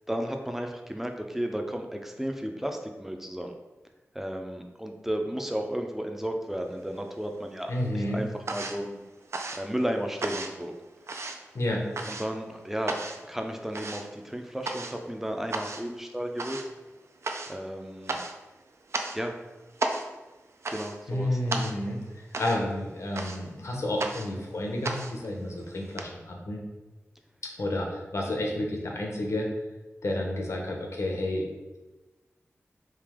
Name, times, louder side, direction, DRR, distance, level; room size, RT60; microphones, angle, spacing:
voice 1, 0.1-3.5 4.1-9.0 9.5-10.7 12.0-13.0 13.3-16.6 17.5-18.2 19.1-19.4 20.7-21.5, equal, 5° right, 3 dB, 0.5 m, -33 dB
sound 1, 6.7-7.5 7.8-26.0, right 3 dB, 65° right, 0.4 m, -36 dB
voice 2, 7.7-8.2 11.5-11.8 21.1-22.0 22.4-26.6 27.6-29.5 30.0-31.5, left 1 dB, 70° left, 0 dB, 0.8 m, -30 dB
3.3 x 2.8 x 3.5 m, 1.1 s
wide cardioid pair, 70°, 5 cm